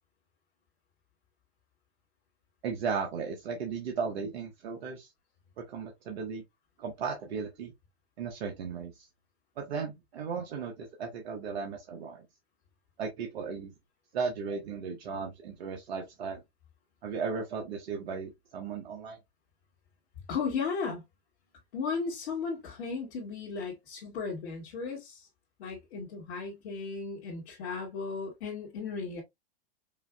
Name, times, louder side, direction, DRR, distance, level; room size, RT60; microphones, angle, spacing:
voice 1, 2.6-5.1 5.6-6.4 6.8-7.7 8.2-9.1 9.6-12.2 13.0-13.7 14.1-16.4 17.0-19.2, right 5 dB, 70° right, 1.1 m, -36 dB
voice 2, 20.3-21.0 21.7-25.3 25.6-29.2, left 5 dB, 65° left, 1.9 m, -35 dB
5.5 x 2.7 x 2.3 m
hypercardioid pair, 115°, 32 cm